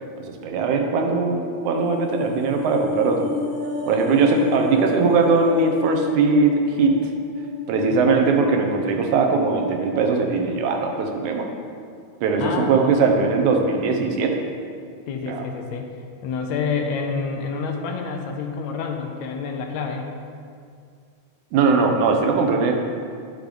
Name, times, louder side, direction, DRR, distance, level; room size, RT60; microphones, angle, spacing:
voice 1, 0.2-3.3 3.9-7.0 7.7-11.5 12.2-14.4 15.3-15.5 21.5-22.7, right 4 dB, 85° right, 3 dB, 2.3 m, -20 dB
sound 1, 1.6-10.1 10.4-10.5, left 2 dB, 45° left, 2.8 m, -32 dB
voice 2, 7.9-8.3 12.4-13.1 15.1-15.9 16.2-20.1, left 5 dB, 75° left, 3 dB, 2.0 m, -28 dB
11.5 x 6.7 x 3.9 m, 2.3 s
omnidirectional pair, 3.3 m